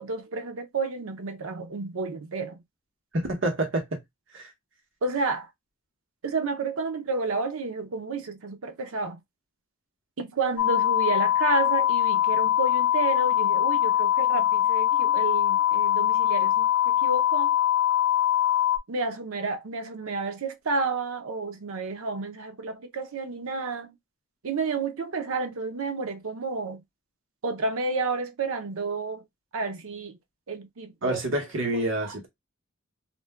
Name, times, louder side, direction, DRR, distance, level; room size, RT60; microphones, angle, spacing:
voice 1, 0.0-2.6 5.0-5.5 6.2-9.2 10.2-17.5 18.9-24.0 24.4-26.8 27.4-29.3 29.5-30.2 30.5-31.2 32.0-32.3, right 3 dB, 75° right, 0.6 m, -31 dB
voice 2, 3.1-4.0 4.3-4.5 31.0-32.3, right 1 dB, 60° right, 1.1 m, -27 dB
sound 1, 10.6-18.8, left 11 dB, 85° left, 0.4 m, -22 dB
2.5 x 2.1 x 3.4 m
head